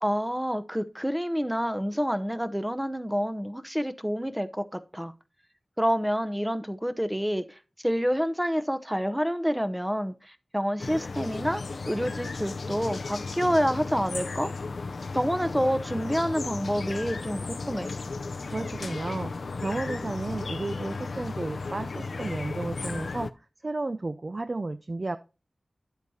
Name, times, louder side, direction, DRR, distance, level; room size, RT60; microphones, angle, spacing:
voice 1, 0.0-5.1 5.8-7.4 7.8-14.5 15.1-17.9, equal, 5° right, 0.7 m, -28 dB
sound 1, 10.8-23.3, left 3 dB, 85° left, 0.5 m, -35 dB
voice 2, 18.5-19.3 19.6-23.3 23.6-25.2, right 2 dB, 45° right, 0.4 m, -33 dB
11.0 x 8.1 x 2.8 m
wide cardioid pair, 75°, 0 cm